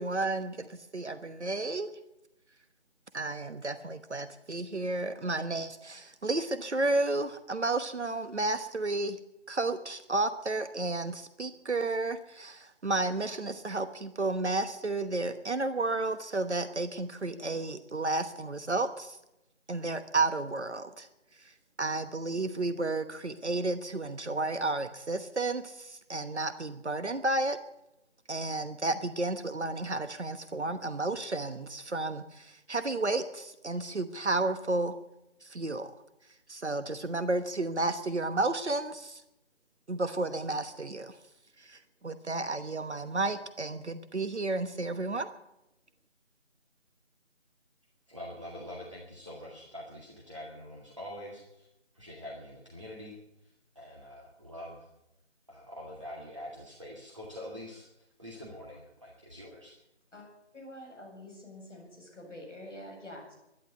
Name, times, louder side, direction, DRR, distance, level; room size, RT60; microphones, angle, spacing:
voice 1, 0.0-1.9 3.1-9.2 9.5-19.2 19.7-21.1 21.4-21.5 21.8-27.6 28.3-34.9 35.4-35.9 36.5-39.2 39.9-41.2 41.6-45.3, right 2 dB, 70° right, 10 dB, 1.2 m, -32 dB
voice 2, 48.1-51.7 51.9-53.2 53.4-54.9 55.5-57.9 58.2-59.8, left 1 dB, 25° right, -4 dB, 1.9 m, -45 dB
voice 3, 60.5-63.3, left 1 dB, 5° left, -17 dB, 5.9 m, -46 dB
12.0 x 11.5 x 9.9 m, 0.87 s
figure-of-eight pair, 180°, 35 cm